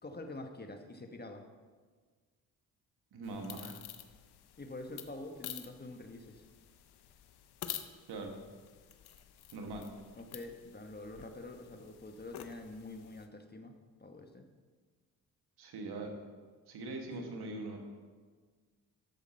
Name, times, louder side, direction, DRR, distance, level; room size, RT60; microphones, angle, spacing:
voice 1, 0.0-1.5 4.6-6.4 10.1-13.7 14.0-14.5 17.1-17.2, left 2 dB, 25° left, 5 dB, 1.2 m, -46 dB
voice 2, 3.1-3.8 8.1-8.3 9.5-9.9 15.6-16.1 16.7-17.8, right 2 dB, 85° right, 3 dB, 1.6 m, -41 dB
sound 1, 3.2-13.3, left 11 dB, 85° left, 0.8 m, -49 dB
11.5 x 7.1 x 4.3 m, 1.5 s
cardioid pair, 65°, 38 cm